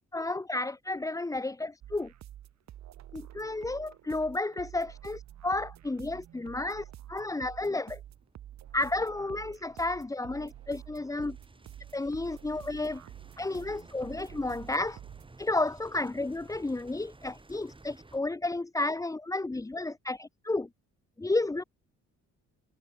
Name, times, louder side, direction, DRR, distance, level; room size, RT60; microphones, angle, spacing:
voice 1, 0.1-2.1 3.1-8.0 8.7-11.4 11.9-13.0 13.4-15.0 15.4-20.7 21.2-21.6, left 2 dB, 10° left, 0.8 m, -32 dB
sound 1, 1.8-15.3, right 12 dB, 65° right, 1.2 m, -49 dB
sound 2, 6.4-18.2, right 2 dB, 15° right, 3.7 m, -56 dB
cardioid pair, 90°, 30 cm